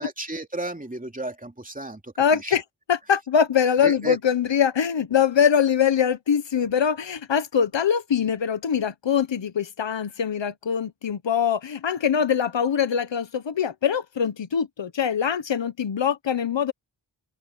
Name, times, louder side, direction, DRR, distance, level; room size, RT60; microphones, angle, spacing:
voice 1, 0.0-2.5 3.8-4.2, right 2 dB, 20° right, 2.9 m, -33 dB
voice 2, 2.2-2.6 2.9-16.7, left 7 dB, 70° left, 1.4 m, -23 dB
open air
cardioid pair, 60°, 45 cm